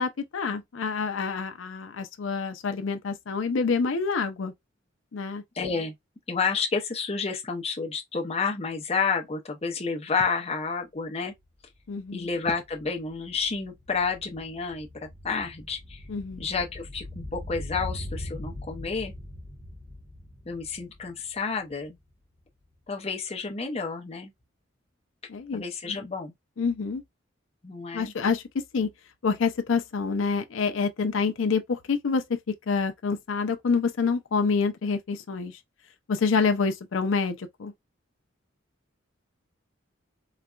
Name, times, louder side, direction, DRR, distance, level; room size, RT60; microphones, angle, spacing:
voice 1, 0.0-4.5 5.1-5.4 11.9-12.3 16.1-16.5 25.3-25.6 26.6-27.0 27.9-28.9 29.2-32.4 32.7-35.5 36.1-37.7, left 5 dB, 80° left, 0.5 m, -27 dB
voice 2, 5.5-5.9 6.3-11.3 12.1-14.9 15.2-16.0 16.4-19.1 20.5-22.0 22.9-24.3 25.5-26.3 27.6-28.1, left 5 dB, 30° left, 0.7 m, -30 dB
sound 1, 11.4-11.5 11.8-22.1 22.4-22.5, left 1 dB, 5° right, 0.9 m, -41 dB
4.0 x 2.2 x 2.3 m
head